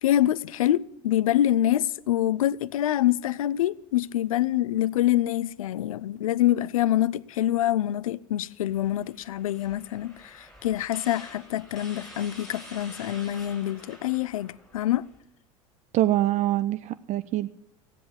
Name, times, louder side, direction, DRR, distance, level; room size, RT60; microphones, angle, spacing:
voice 1, 0.0-15.1, left 13 dB, 75° left, 0.5 m, -25 dB
sound 1, 8.7-15.2, equal, 5° left, 5.0 m, -48 dB
voice 2, 15.9-17.5, right 14 dB, 40° right, 0.5 m, -24 dB
15.0 x 10.0 x 8.1 m
hypercardioid pair, 75°, 18 cm